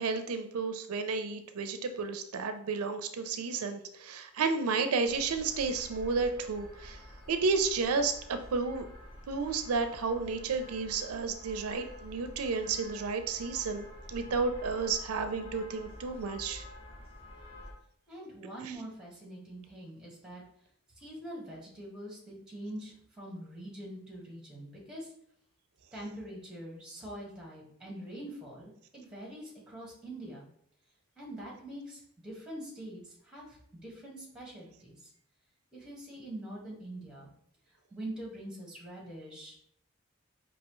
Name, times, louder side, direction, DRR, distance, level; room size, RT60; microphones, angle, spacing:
voice 1, 0.0-7.0 7.3-8.9 9.3-16.6, right 4 dB, 90° right, 8 dB, 0.4 m, -32 dB
sound 1, 5.0-17.7, equal, 25° left, 0.9 m, -49 dB
voice 2, 18.1-20.4 21.0-25.1 25.9-30.4 31.2-35.1 35.7-37.3 37.7-39.5, right 1 dB, 5° right, -4 dB, 1.4 m, -44 dB
5.4 x 2.7 x 3.0 m, 0.69 s
head